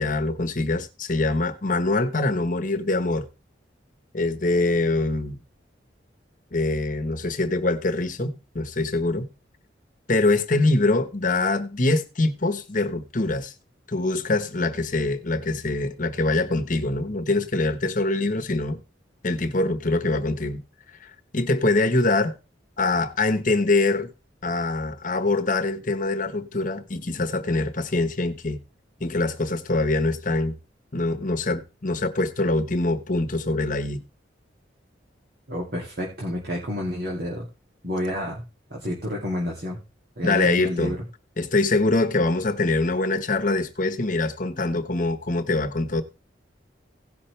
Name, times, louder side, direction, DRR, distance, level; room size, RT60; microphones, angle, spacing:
voice 1, 0.0-3.3 4.1-5.4 6.5-9.3 10.1-13.5 13.9-18.8 19.2-20.6 21.0-22.3 22.8-24.1 24.4-28.6 29.0-30.5 30.9-34.0 40.2-41.0 41.4-46.0, left 2 dB, 45° left, 1.2 m, -24 dB
voice 2, 35.5-37.5 37.8-38.4 38.7-39.8 40.2-41.0, left 1 dB, 55° right, 2.4 m, -29 dB
17.0 x 5.8 x 3.3 m
head